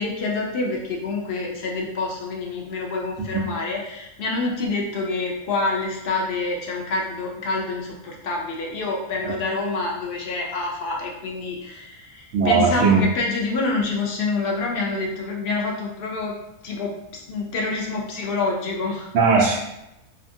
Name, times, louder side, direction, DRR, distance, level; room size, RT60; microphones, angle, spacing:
voice 1, 0.0-16.4 16.6-19.1, left 3 dB, 85° left, -1 dB, 0.5 m, -27 dB
voice 2, 12.3-13.0 19.1-19.6, right 5 dB, 70° right, -5 dB, 0.9 m, -18 dB
2.7 x 2.5 x 2.6 m, 0.87 s
omnidirectional pair, 1.5 m